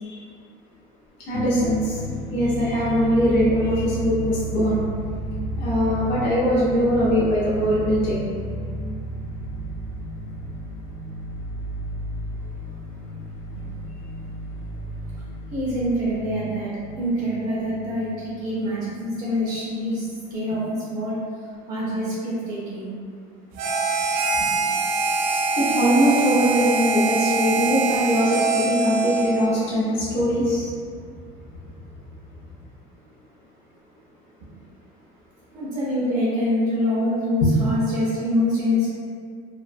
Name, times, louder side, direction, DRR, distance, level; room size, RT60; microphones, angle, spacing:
sound 1, 1.3-19.4, equal, 85° left, 0.5 m, -32 dB
voice 1, 1.3-2.0 2.3-4.8 5.5-8.3 25.6-30.7 37.4-37.5, equal, 30° left, -9 dB, 0.5 m, -21 dB
voice 2, 15.5-16.7 17.0-21.2 21.7-22.9 23.5-23.6 24.3-24.5 35.5-38.9, left 1 dB, 25° right, -9 dB, 0.4 m, -25 dB
Harmonica, 23.6-29.6, right 3 dB, 90° right, 0.4 m, -23 dB
2.4 x 2.1 x 2.4 m, 2.2 s
cardioid pair, 175°, 19 cm